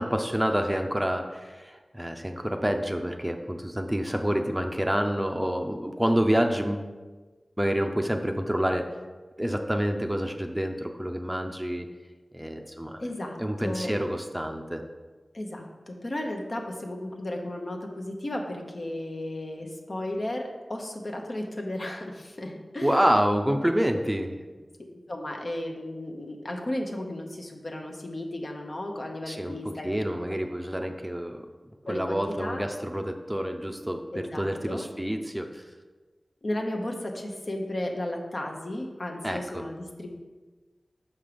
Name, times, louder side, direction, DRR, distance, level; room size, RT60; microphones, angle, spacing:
voice 1, 0.0-6.9 7.6-8.9 9.4-11.9 12.3-13.0 13.4-14.8 22.8-24.4 29.3-31.4 31.8-35.7 39.2-39.6, equal, 10° right, 5 dB, 0.6 m, -28 dB
voice 2, 13.0-13.9 15.3-23.6 25.1-30.2 30.7-30.9 31.9-32.7 34.1-34.9 36.4-40.1, left 1 dB, 55° left, 2 dB, 1.0 m, -34 dB
6.0 x 5.5 x 5.1 m, 1.3 s
wide cardioid pair, 55°, 0 cm